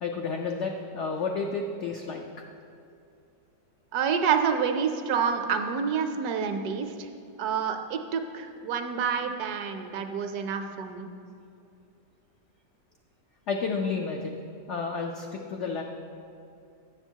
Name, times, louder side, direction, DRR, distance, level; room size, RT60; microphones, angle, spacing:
voice 1, 0.0-2.2 13.5-14.4 14.7-15.8, left 4 dB, 85° left, 2 dB, 0.6 m, -31 dB
voice 2, 3.9-7.1 7.4-11.1, right 6 dB, 70° right, 6 dB, 1.0 m, -28 dB
7.9 x 6.9 x 4.5 m, 2.6 s
omnidirectional pair, 1.8 m